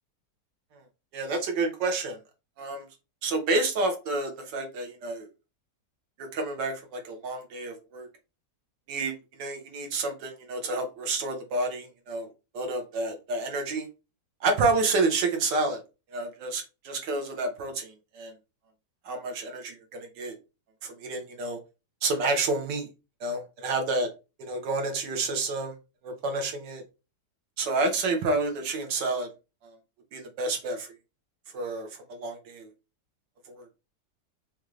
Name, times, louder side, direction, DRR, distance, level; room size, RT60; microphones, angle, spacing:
voice 1, 1.1-2.2 2.6-2.8 3.2-5.3 6.2-8.1 8.9-12.3 12.5-13.9 14.4-15.8 16.1-18.3 19.0-20.4 20.8-21.6 22.0-22.9 23.2-24.1 24.4-25.7 26.0-26.8 27.6-29.3 30.1-30.9 31.5-32.7 33.5-33.6, right 3 dB, 80° right, 4 dB, 1.6 m, -29 dB
5.2 x 2.4 x 3.1 m, 0.29 s
omnidirectional pair, 1.9 m